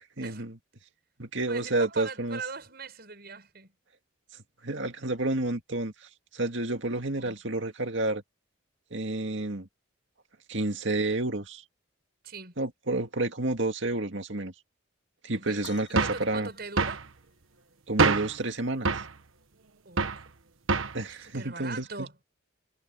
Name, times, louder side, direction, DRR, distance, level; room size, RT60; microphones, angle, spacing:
voice 1, 0.2-0.6 1.2-2.4 4.6-8.2 8.9-9.7 10.5-11.6 12.6-14.5 15.2-16.5 17.9-19.0 20.9-22.1, right 2 dB, 65° right, 2.2 m, -30 dB
voice 2, 1.5-3.7 7.2-7.4 12.2-12.5 15.3-15.7 16.0-17.1 19.9-20.2 21.2-22.2, right 4 dB, 50° right, 7.2 m, -41 dB
sound 1, 15.6-17.5 19.2-19.3 20.1-20.3 21.2-21.3, left 7 dB, 60° left, 7.1 m, -52 dB
sound 2, 16.0-16.3 16.8-17.0 18.0-18.4 18.9-19.1 20.0-20.2 20.7-21.0, right 4 dB, 90° right, 1.3 m, -25 dB
head